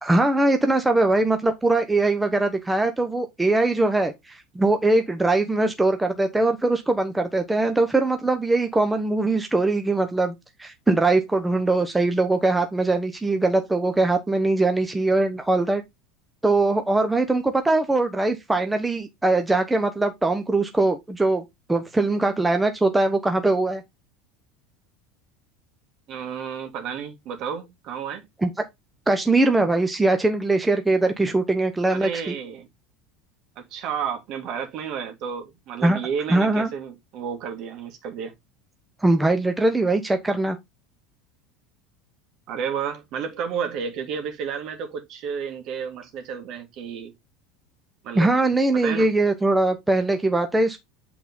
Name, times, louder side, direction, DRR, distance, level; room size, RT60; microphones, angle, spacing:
voice 1, 0.0-10.3 10.6-15.8 16.4-21.4 21.7-23.8 28.4-28.5 29.1-32.3 35.8-36.0 36.3-36.7 39.0-40.6 48.1-50.8, right 2 dB, 10° right, 1.1 m, -21 dB
voice 2, 26.1-28.3 31.9-32.7 33.6-38.3 42.5-47.1 48.0-48.3 48.7-49.1, right 7 dB, 55° right, 2.4 m, -31 dB
8.1 x 4.3 x 3.7 m
hypercardioid pair, 85°, 0 cm